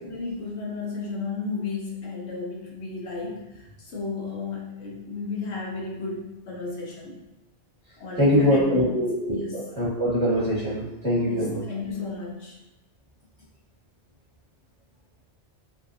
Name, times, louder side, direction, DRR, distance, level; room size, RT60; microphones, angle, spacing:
voice 1, 0.0-7.2 8.0-9.0 9.3-9.6 11.2-12.6, left 4 dB, 75° left, -3 dB, 1.1 m, -33 dB
voice 2, 8.2-11.6, equal, 5° left, -10 dB, 1.1 m, -23 dB
3.4 x 2.6 x 2.6 m, 0.97 s
omnidirectional pair, 1.2 m